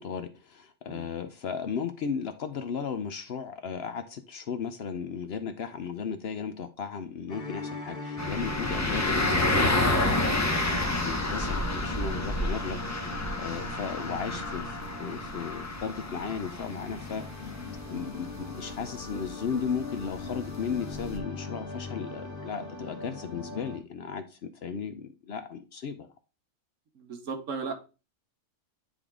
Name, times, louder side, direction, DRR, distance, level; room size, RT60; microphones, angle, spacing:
voice 1, 0.0-10.4 11.0-12.8 13.4-17.5 17.9-26.1, left 6 dB, 60° left, 0.8 m, -35 dB
sound 1, 7.3-23.8, left 2 dB, 45° left, 1.7 m, -40 dB
sound 2, 8.2-21.2, left 2 dB, 15° left, 0.8 m, -30 dB
voice 2, 27.0-27.7, right 5 dB, 80° right, 1.3 m, -35 dB
10.0 x 3.4 x 3.6 m
omnidirectional pair, 1.3 m